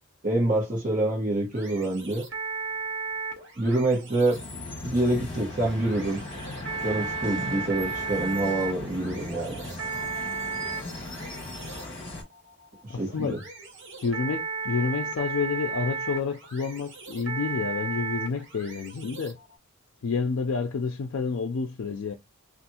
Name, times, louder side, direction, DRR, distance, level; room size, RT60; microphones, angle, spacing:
voice 1, 0.2-2.2 3.6-4.4 4.8-6.2 6.8-9.6 12.8-13.4, right 1 dB, 40° right, 1.1 m, -26 dB
sound 1, 1.5-19.6, right 5 dB, 60° right, 1.0 m, -35 dB
sound 2, 4.3-12.2, left 2 dB, 25° left, 1.2 m, -38 dB
voice 2, 12.9-13.4 14.0-19.4 20.0-22.1, left 5 dB, 70° left, 0.4 m, -29 dB
3.4 x 2.4 x 2.8 m
head